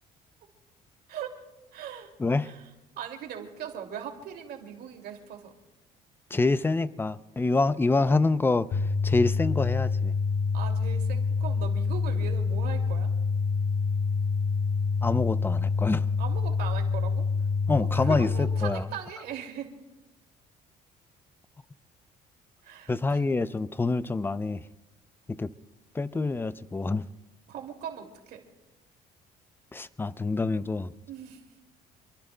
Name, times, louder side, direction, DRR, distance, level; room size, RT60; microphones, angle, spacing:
voice 1, 1.1-1.4 1.7-2.1 2.4-2.6 3.0-5.5 10.5-13.1 16.2-17.3 18.0-19.7 22.6-23.2 27.5-28.4 31.1-31.4, right 8 dB, 70° right, 3 dB, 2.5 m, -39 dB
voice 2, 2.2-2.5 6.3-10.1 15.0-16.1 17.7-18.9 22.9-24.6 25.3-25.5 25.9-27.1 29.7-30.9, left 3 dB, 15° left, 15 dB, 0.5 m, -26 dB
sound 1, 8.7-18.7, left 5 dB, 70° left, 2.2 m, -27 dB
27.5 x 22.5 x 2.2 m, 1.0 s
cardioid pair, 110°, 17 cm